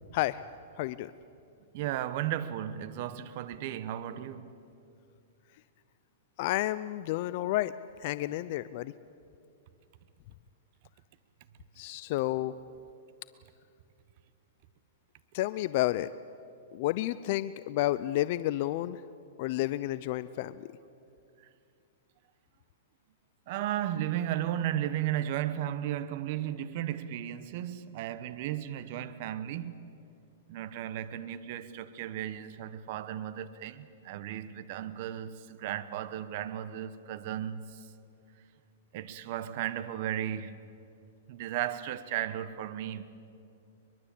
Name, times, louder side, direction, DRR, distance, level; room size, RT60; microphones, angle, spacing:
voice 1, 0.8-1.1 6.4-7.7 8.0-8.9 11.8-12.5 15.3-16.1 16.7-19.0 19.4-20.6, left 16 dB, 50° left, 0.5 m, -30 dB
voice 2, 1.7-4.5 23.5-29.8 30.5-37.8 38.9-40.6 41.3-43.1, right 11 dB, 50° right, 1.1 m, -35 dB
23.0 x 23.0 x 8.5 m
hypercardioid pair, 135°, 0 cm